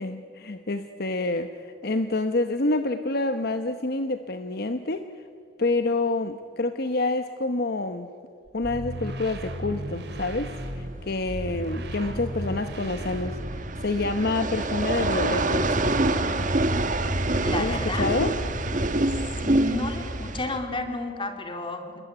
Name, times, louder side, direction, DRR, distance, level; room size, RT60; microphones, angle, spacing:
voice 1, 0.0-5.1 5.6-8.1 8.5-15.7 17.5-18.3, left 2 dB, 50° left, 9 dB, 0.9 m, -28 dB
sound 1, 8.5-14.0, equal, 55° right, 3.0 m, -35 dB
sound 2, 9.7-20.6, right 2 dB, 40° right, 1.4 m, -27 dB
voice 2, 17.4-18.1 19.4-22.0, left 2 dB, 25° left, 5 dB, 2.7 m, -31 dB
28.0 x 20.5 x 9.8 m, 2.4 s
head